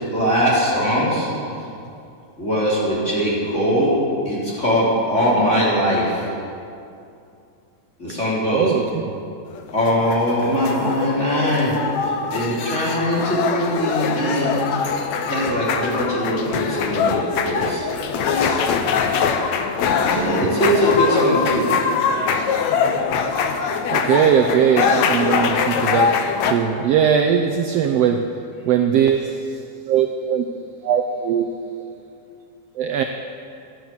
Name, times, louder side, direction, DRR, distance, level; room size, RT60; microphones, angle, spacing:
voice 1, 0.1-1.3 2.4-4.0 4.2-6.3 8.0-8.7 9.7-11.7 12.0-14.7 15.3-18.6 20.0-21.7, equal, 20° left, -7 dB, 4.3 m, -21 dB
voice 2, 8.5-9.0 23.9-26.1 26.4-28.2 28.7-29.4 29.9-30.4 30.8-31.5 32.8-33.0, right 8 dB, 80° right, 5 dB, 1.4 m, -19 dB
sound 1, 9.5-26.5, left 6 dB, 70° left, 2.0 m, -22 dB
sound 2, 20.0-21.7, right 5 dB, 40° right, 1.6 m, -35 dB
15.0 x 10.5 x 7.2 m, 2.5 s
omnidirectional pair, 3.6 m